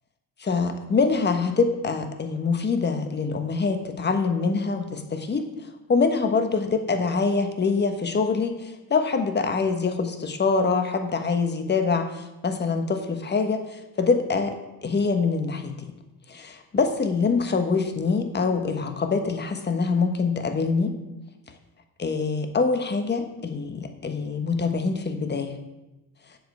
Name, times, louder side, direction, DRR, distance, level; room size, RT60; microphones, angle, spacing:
voice 1, 0.4-5.5 5.9-15.8 16.3-20.9 22.0-25.6, left 4 dB, 30° left, 7 dB, 1.3 m, -25 dB
8.1 x 7.9 x 6.8 m, 1.0 s
cardioid pair, 110°, 36 cm